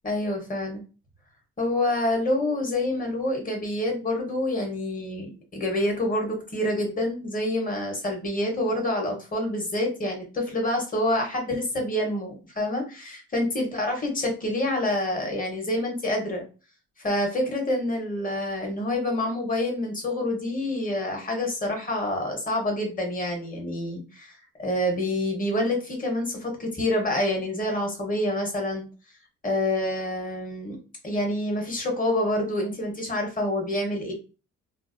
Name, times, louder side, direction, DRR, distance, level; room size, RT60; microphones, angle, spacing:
voice 1, 0.0-0.8 1.6-16.4 17.0-28.9 29.4-30.8 31.0-34.1, left 1 dB, 30° left, 1 dB, 1.1 m, -27 dB
2.7 x 2.0 x 2.5 m, 0.33 s
cardioid pair, 90°, 30 cm